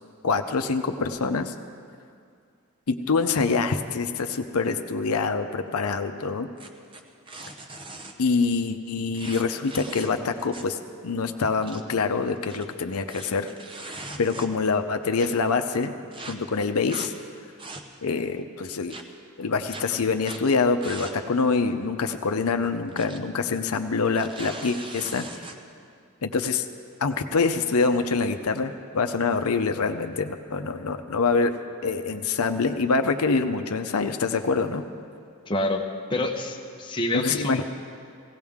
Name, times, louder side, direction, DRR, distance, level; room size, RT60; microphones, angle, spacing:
voice 1, 0.2-1.5 2.9-6.5 8.2-10.8 11.0-13.5 14.2-15.9 16.3-17.1 18.0-18.9 19.4-25.2 26.2-26.7 27.0-31.6 31.8-34.8 37.1-37.6, left 4 dB, 85° left, 7 dB, 0.7 m, -25 dB
sound 1, 6.6-8.1 9.1-10.8 11.1-11.2 11.5-11.8 12.4-14.7 15.2-15.3 16.1-16.3 16.9-17.1 17.5-18.1 18.9-19.0 19.7-19.8 20.2-20.4 20.8-21.2 21.5-21.6 22.6-23.2 23.5-23.7 24.1-25.6, right 2 dB, 25° right, 0.7 m, -40 dB
voice 2, 35.5-35.8 36.1-37.6, left 1 dB, 20° left, 1 dB, 0.8 m, -27 dB
17.0 x 17.0 x 3.6 m, 2.3 s
head